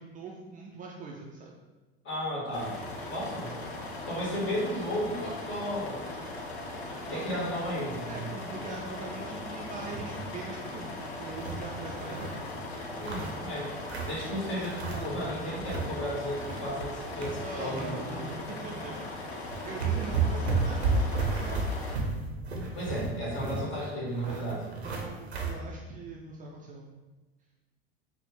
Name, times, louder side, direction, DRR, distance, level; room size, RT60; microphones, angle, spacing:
voice 1, 0.0-1.6 7.0-7.5 8.1-12.5 17.4-21.6 24.2-24.5 24.8-26.9, right 3 dB, 25° right, -2 dB, 0.4 m, -42 dB
voice 2, 2.0-2.7 3.1-3.5 4.1-6.1 7.1-8.2 13.0-13.7 14.0-18.2 22.7-24.6, equal, 40° left, -5 dB, 1.5 m, -34 dB
sound 1, 2.5-21.9, left 2 dB, 80° left, 0.6 m, -39 dB
sound 2, 9.9-10.3 10.7-10.8 11.1-12.4 12.8-14.2 14.6-15.2 15.5-15.9 16.2-17.9 18.2-18.4 19.1-19.2 19.5-25.5, right 3 dB, 90° right, 0.6 m, -32 dB
4.0 x 2.0 x 3.5 m, 1.2 s
figure-of-eight pair, 75°, 31 cm